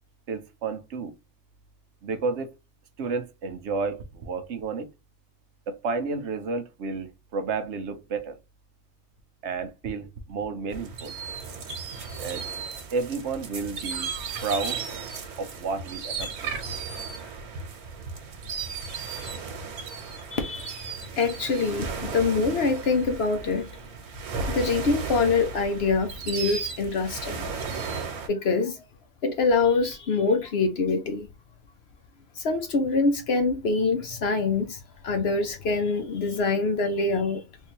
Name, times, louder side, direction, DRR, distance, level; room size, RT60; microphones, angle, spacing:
voice 1, 0.3-1.1 2.0-2.6 3.0-4.9 5.7-8.4 9.4-11.1 12.2-12.4 12.9-14.1 14.4-14.8 15.4-16.6, right 4 dB, 60° right, 0.9 m, -31 dB
sound 1, 10.7-28.3, right 5 dB, 85° right, 1.4 m, -35 dB
voice 2, 20.3-20.7 21.2-23.7 24.5-27.5 28.3-28.8 29.2-31.3 32.4-37.4, left 4 dB, 60° left, 0.7 m, -25 dB
3.7 x 2.6 x 2.7 m
omnidirectional pair, 1.5 m